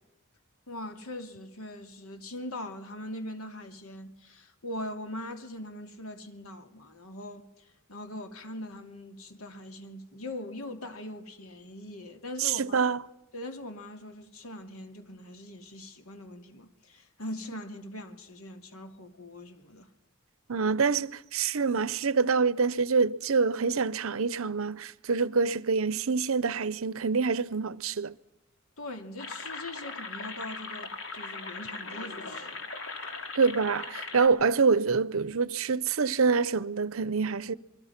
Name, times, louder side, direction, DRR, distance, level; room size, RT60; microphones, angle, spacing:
voice 1, 0.7-12.8 13.3-19.9 28.8-32.6, left 1 dB, 90° left, 2.5 m, -41 dB
voice 2, 12.4-13.0 20.5-28.2 33.3-37.5, right 5 dB, 75° right, 0.7 m, -26 dB
sound 1, 29.2-34.3, left 4 dB, 65° left, 3.2 m, -39 dB
26.5 x 23.0 x 5.9 m
head